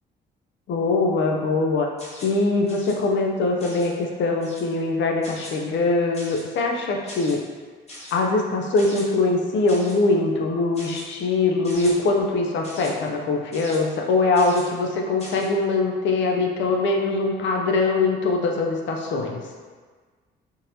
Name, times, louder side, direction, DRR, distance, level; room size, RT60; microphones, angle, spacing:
voice 1, 0.7-1.9 2.2-7.4 8.1-19.4, left 3 dB, 70° left, 1 dB, 0.5 m, -22 dB
sound 1, 2.0-2.4 2.7-3.0 3.6-3.9 4.4-4.7 5.2-5.6 6.1-6.5 7.1-7.4 7.9-8.2 8.8-9.0 9.7-10.0 10.7-11.0 11.6-11.9 12.6-12.9 13.5-13.8 14.3-14.7 15.2-15.5, left 1 dB, 35° left, 1.0 m, -40 dB
3.6 x 2.8 x 2.6 m, 1.5 s
cardioid pair, 90°, 20 cm